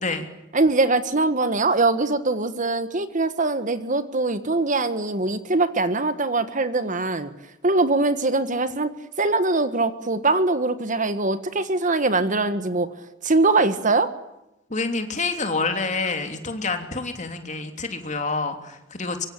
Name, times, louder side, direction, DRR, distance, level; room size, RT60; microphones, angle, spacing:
voice 1, 0.5-7.3 7.6-8.9 9.2-12.9 13.2-14.1, right 3 dB, 40° right, 11 dB, 1.5 m, -22 dB
voice 2, 14.7-19.3, left 3 dB, 40° left, 6 dB, 3.2 m, -27 dB
24.5 x 24.0 x 8.7 m, 0.91 s
head